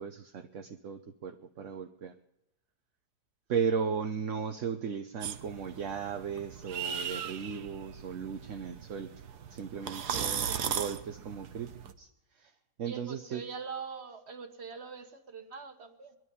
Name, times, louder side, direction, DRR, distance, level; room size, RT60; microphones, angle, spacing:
voice 1, 0.0-2.1 3.5-9.1 9.5-11.7 12.0-12.1 12.4-12.5 12.8-13.4, right 6 dB, 55° right, 6 dB, 1.0 m, -36 dB
sound 1, 5.2-11.9, right 8 dB, 70° right, 1.5 m, -38 dB
voice 2, 10.1-10.7 12.8-16.2, right 5 dB, 40° right, 7 dB, 1.6 m, -43 dB
20.5 x 12.0 x 5.4 m, 0.89 s
omnidirectional pair, 1.8 m